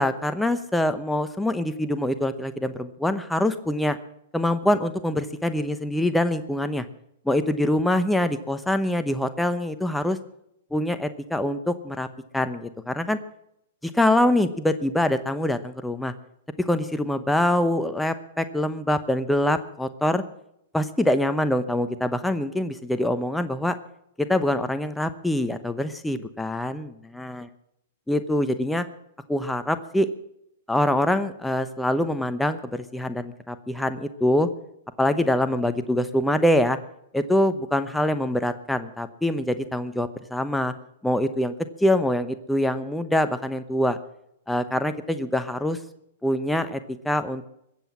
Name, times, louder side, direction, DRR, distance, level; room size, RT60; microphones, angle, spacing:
voice 1, 0.0-4.0 4.3-6.8 7.3-10.2 10.7-12.1 12.3-13.2 13.8-16.1 16.6-20.2 20.7-23.8 24.2-27.5 28.1-28.8 29.3-30.1 30.7-34.5 35.0-36.8 37.1-40.7 41.0-41.5 41.8-44.0 44.5-45.8 46.2-46.8 47.0-47.5, left 1 dB, 5° left, 10 dB, 0.9 m, -24 dB
21.5 x 7.9 x 7.5 m, 0.77 s
hypercardioid pair, 120°, 0 cm